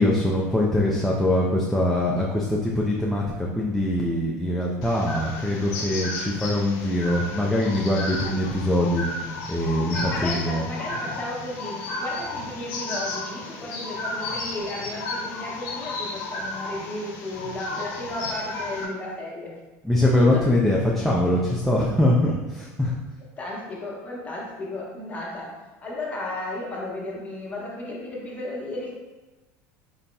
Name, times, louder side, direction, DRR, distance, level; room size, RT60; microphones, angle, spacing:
voice 1, 0.0-9.0 9.5-10.6 19.8-22.9, left 1 dB, ahead, -3 dB, 0.4 m, -23 dB
sound 1, 4.8-18.8, left 2 dB, 65° left, 0.8 m, -33 dB
voice 2, 9.9-19.6 20.3-20.4 23.4-25.5 25.8-28.9, left 2 dB, 20° left, -5 dB, 1.1 m, -34 dB
4.0 x 3.9 x 2.3 m, 1.2 s
supercardioid pair, 115°, 8 cm